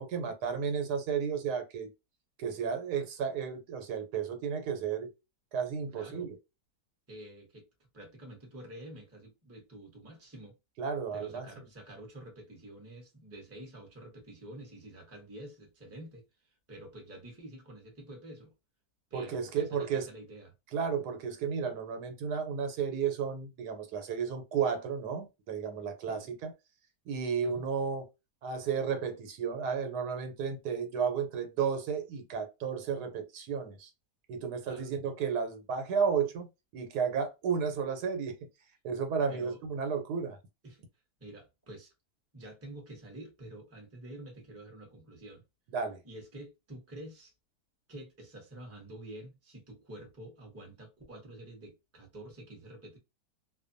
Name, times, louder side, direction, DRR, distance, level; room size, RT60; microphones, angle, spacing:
voice 1, 0.0-1.9 2.4-5.1 5.5-6.4 10.8-11.5 19.1-20.1 20.7-26.5 27.1-28.1 28.4-33.9 34.3-36.5 36.7-38.4 38.8-40.4 45.7-46.0, right 6 dB, 80° right, 1.2 m, -33 dB
voice 2, 5.9-6.3 7.1-7.7 7.9-10.5 11.1-18.5 19.1-20.5 26.1-26.3 27.4-27.6 34.7-34.9 39.3-39.6 40.6-40.8 41.2-41.9 42.3-45.4 46.0-47.3 47.9-53.0, right 1 dB, 15° right, 0.7 m, -48 dB
2.6 x 2.2 x 2.5 m
omnidirectional pair, 1.7 m